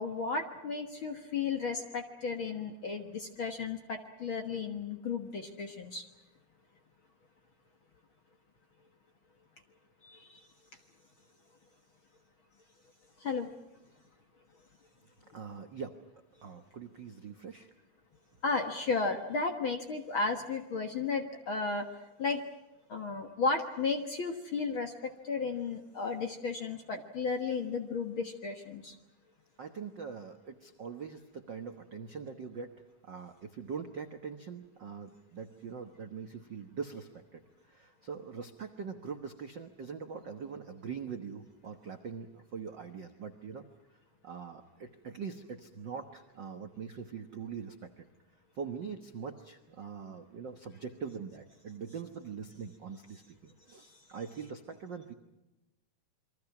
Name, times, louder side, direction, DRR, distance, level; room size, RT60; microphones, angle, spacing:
voice 1, 0.0-6.0 10.0-10.4 13.2-13.5 18.4-21.9 22.2-22.4 22.9-28.9 53.8-54.0, left 4 dB, 55° left, 5 dB, 1.5 m, -34 dB
voice 2, 15.3-16.0 16.4-17.7 29.6-32.7 33.0-43.7 44.2-48.1 48.5-55.1, right 6 dB, 80° right, 6 dB, 1.0 m, -43 dB
28.5 x 23.5 x 6.0 m, 0.98 s
omnidirectional pair, 4.1 m